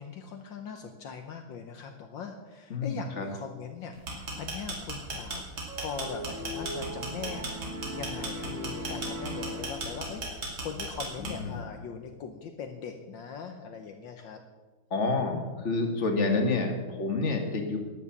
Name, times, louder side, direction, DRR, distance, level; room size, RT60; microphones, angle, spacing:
voice 1, 0.0-14.4 15.8-16.0, left 6 dB, 70° left, 5 dB, 1.6 m, -41 dB
voice 2, 2.7-3.2 11.2-11.6 14.9-17.8, left 3 dB, 35° left, 4 dB, 2.0 m, -28 dB
sound 1, 3.9-11.6, right 2 dB, 70° right, 3.4 m, -36 dB
sound 2, 5.7-10.3, equal, 40° right, 1.9 m, -39 dB
12.5 x 9.2 x 7.4 m, 1.3 s
omnidirectional pair, 2.2 m